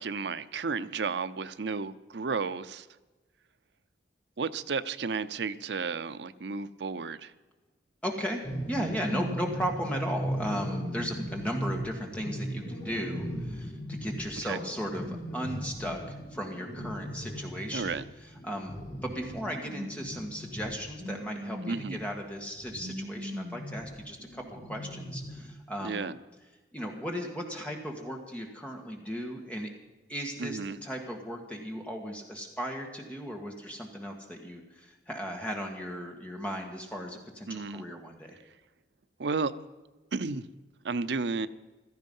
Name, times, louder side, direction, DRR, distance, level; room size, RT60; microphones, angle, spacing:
voice 1, 0.0-2.9 4.4-7.3 14.4-14.6 17.7-18.0 21.6-22.0 25.8-26.2 30.4-30.8 37.5-37.8 39.2-39.5 40.1-40.5 40.8-41.5, right 4 dB, 70° right, 14 dB, 0.6 m, -32 dB
voice 2, 8.0-18.0 18.4-18.7 19.0-26.0 26.7-29.7 30.1-38.4, equal, 5° left, 1 dB, 1.6 m, -36 dB
sound 1, 8.4-22.1 22.5-25.4, equal, 55° left, 6.7 m, -37 dB
16.0 x 13.5 x 5.5 m, 1.2 s
head